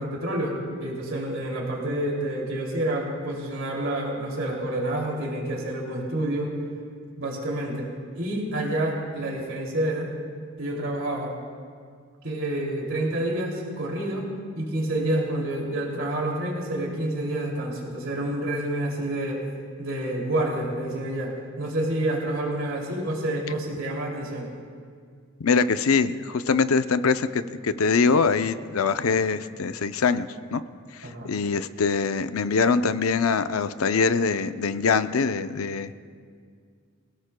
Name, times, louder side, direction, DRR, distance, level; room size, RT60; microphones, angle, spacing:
voice 1, 0.0-6.5 7.2-7.9 8.1-10.1 10.6-11.3 12.2-14.3 14.5-19.4 19.8-24.5 31.0-31.3, right 1 dB, 70° right, -2 dB, 2.6 m, -28 dB
voice 2, 25.4-30.6 31.0-35.9, left 5 dB, 85° left, 11 dB, 0.5 m, -23 dB
26.0 x 16.5 x 2.2 m, 2.1 s
head